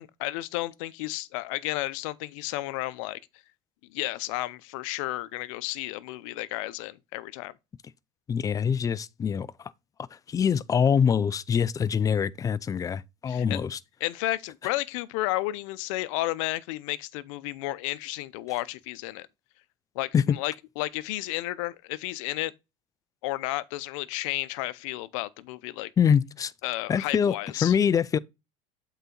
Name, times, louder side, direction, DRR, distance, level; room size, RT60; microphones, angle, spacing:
voice 1, 0.0-3.2 3.9-7.5 13.3-13.6 14.0-19.3 19.9-22.5 23.2-25.9 26.6-27.7, left 18 dB, 75° left, 0.6 m, -32 dB
voice 2, 8.3-9.5 10.3-13.8 20.1-20.4 26.0-26.5 26.9-27.3 27.6-28.2, left 7 dB, 20° left, 0.4 m, -24 dB
8.1 x 4.0 x 3.9 m
supercardioid pair, 115°, 17 cm